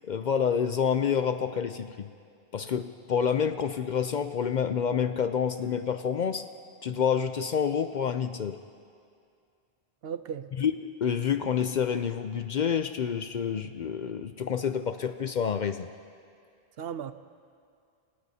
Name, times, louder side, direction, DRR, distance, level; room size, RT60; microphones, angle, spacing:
voice 1, 0.0-2.1 2.5-6.5 6.8-8.6 10.6-15.9, left 7 dB, 55° left, 10 dB, 0.6 m, -28 dB
voice 2, 10.0-10.5 16.8-17.1, right 8 dB, 70° right, 11 dB, 0.8 m, -35 dB
27.5 x 17.5 x 2.8 m, 2.3 s
omnidirectional pair, 1.1 m